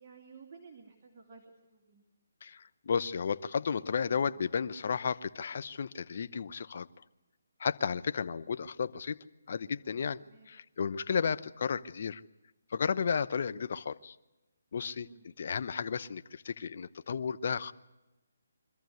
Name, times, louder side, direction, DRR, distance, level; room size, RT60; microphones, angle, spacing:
voice 1, 0.0-2.1 10.2-10.6 14.9-15.3, right 5 dB, 25° right, -1 dB, 2.9 m, -54 dB
voice 2, 2.4-6.9 7.6-9.2 9.5-10.2 10.5-12.2 12.7-14.2 14.7-15.1 15.4-17.7, left 6 dB, 55° left, 13 dB, 0.9 m, -33 dB
24.5 x 14.0 x 9.5 m, 1.0 s
figure-of-eight pair, 155°, 0 cm